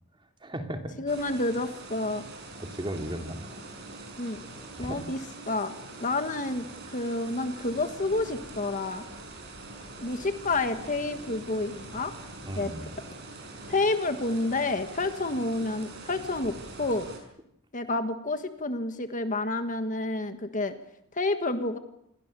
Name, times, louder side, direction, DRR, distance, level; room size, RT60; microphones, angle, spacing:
voice 1, 0.4-0.9 2.6-3.6 4.7-5.0 12.5-12.9, right 1 dB, 25° right, 4 dB, 3.0 m, -35 dB
voice 2, 1.0-2.2 4.2-4.4 4.8-5.2 5.5-5.7 6.0-9.0 10.0-12.1 12.6-12.7 13.7-17.1 17.7-20.7 21.1-21.8, left 2 dB, 40° left, 8 dB, 1.6 m, -29 dB
sound 1, 1.1-17.2, right 2 dB, 55° right, 6.7 m, -44 dB
27.5 x 21.0 x 6.9 m, 0.77 s
head